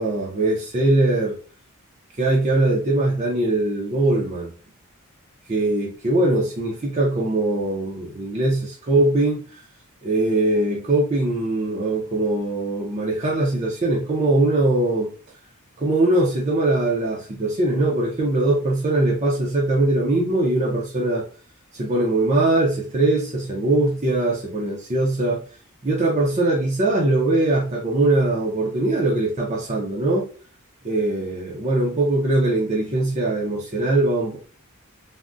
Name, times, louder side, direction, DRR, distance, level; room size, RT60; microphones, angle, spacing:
voice 1, 0.0-1.4 2.1-4.5 5.5-9.4 10.0-15.1 15.8-21.2 21.7-25.4 25.8-30.3 30.8-34.4, right 2 dB, 30° right, 0.5 m, -21 dB
3.4 x 2.0 x 2.5 m
head